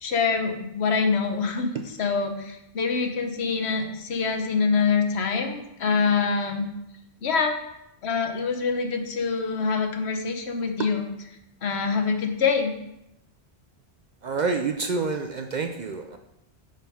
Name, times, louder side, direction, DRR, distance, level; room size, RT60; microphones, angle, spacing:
voice 1, 0.0-6.7 7.2-7.6 8.0-11.1 11.6-12.7, left 5 dB, 75° left, 5 dB, 1.1 m, -25 dB
voice 2, 14.2-16.2, right 4 dB, 55° right, 5 dB, 0.5 m, -28 dB
6.5 x 3.9 x 5.4 m, 0.82 s
omnidirectional pair, 1.1 m